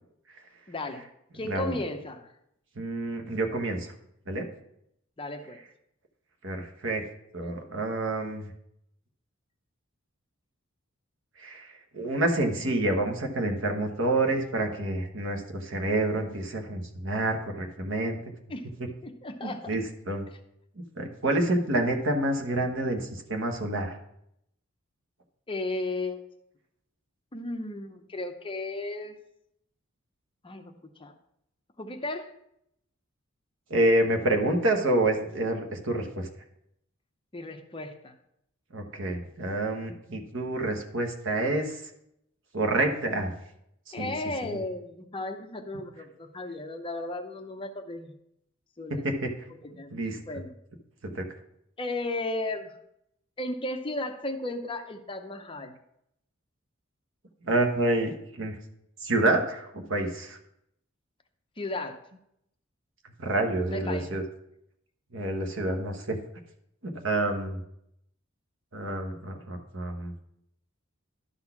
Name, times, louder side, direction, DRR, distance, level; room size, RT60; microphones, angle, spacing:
voice 1, 0.7-1.1 1.3-2.3 5.2-5.6 18.5-18.7 19.0-19.8 25.5-26.2 27.3-29.2 30.4-30.7 31.0-31.1 31.8-32.3 37.3-38.1 43.9-48.1 48.8-49.1 49.6-49.9 50.3-50.5 51.8-52.7 53.4-55.7 61.6-62.0 63.7-64.1, left 2 dB, 25° left, 6 dB, 0.7 m, -34 dB
voice 2, 2.8-3.9 4.3-4.5 6.4-7.0 7.3-8.5 11.4-18.2 18.8-18.9 19.4-20.3 21.0-24.0 33.7-36.3 38.7-41.8 42.5-43.3 43.9-44.1 44.4-44.6 48.9-49.3 49.9-50.2 51.0-51.2 57.4-58.6 59.0-60.4 63.2-64.2 65.1-66.2 66.8-67.6 68.7-70.1, right 2 dB, 60° right, 4 dB, 1.2 m, -28 dB
11.5 x 4.1 x 5.8 m, 0.78 s
head